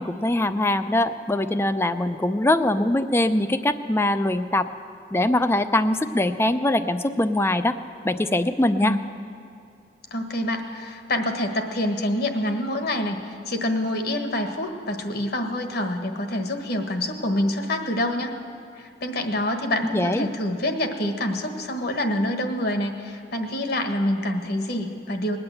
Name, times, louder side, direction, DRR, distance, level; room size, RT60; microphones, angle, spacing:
voice 1, 0.0-4.7 5.1-7.8 8.0-9.0 19.9-20.3, left 1 dB, 15° left, 11 dB, 0.5 m, -22 dB
voice 2, 10.1-18.3 18.8-25.4, left 1 dB, 60° left, 5 dB, 1.4 m, -26 dB
20.0 x 8.9 x 7.7 m, 2.5 s
head